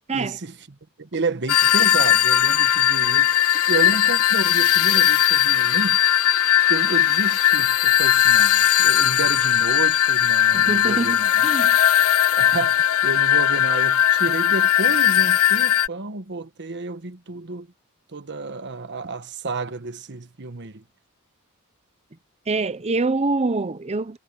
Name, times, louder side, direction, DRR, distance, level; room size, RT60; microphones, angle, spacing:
voice 1, 0.1-0.5 1.0-3.3 3.7-6.0 6.7-11.5 12.4-17.7 18.1-20.8, right 3 dB, 55° right, 1.2 m, -31 dB
sound 1, 1.5-15.9, left 11 dB, 80° left, 0.5 m, -18 dB
voice 2, 10.5-11.8 22.5-24.2, right 3 dB, 30° right, 0.7 m, -25 dB
head